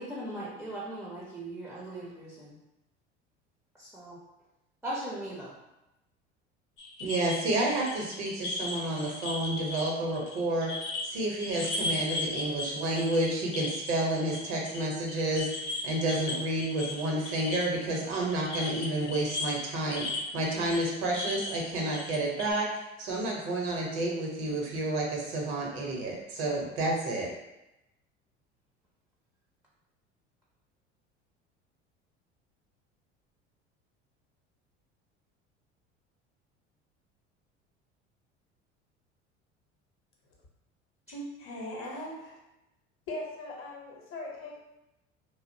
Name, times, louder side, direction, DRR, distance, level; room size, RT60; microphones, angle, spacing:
voice 1, 0.0-2.6 3.8-4.2 4.8-5.6 9.0-9.1, right 1 dB, 5° right, -6 dB, 0.5 m, -39 dB
sound 1, 6.8-11.1 11.4-14.8 15.1-22.5, left 2 dB, 80° left, 0.6 m, -37 dB
voice 2, 7.0-10.7 11.0-15.5 15.8-20.1 20.3-22.7 23.0-27.3, right 1 dB, 65° right, -1 dB, 0.8 m, -30 dB
voice 3, 41.1-42.4 43.1-44.6, left 1 dB, 35° left, -2 dB, 0.8 m, -39 dB
2.5 x 2.0 x 2.5 m, 0.93 s
hypercardioid pair, 70°, 35 cm